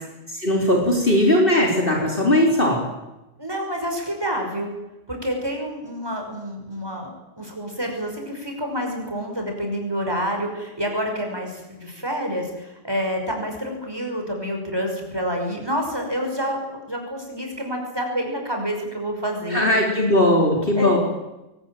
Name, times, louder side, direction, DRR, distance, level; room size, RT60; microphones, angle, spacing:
voice 1, 0.3-2.8 19.5-21.0, left 1 dB, 40° left, 0 dB, 4.0 m, -19 dB
voice 2, 3.4-4.8 5.1-7.1 7.4-19.7 20.8-21.0, equal, 20° right, 2 dB, 5.8 m, -28 dB
22.0 x 19.5 x 9.1 m, 0.98 s
omnidirectional pair, 1.3 m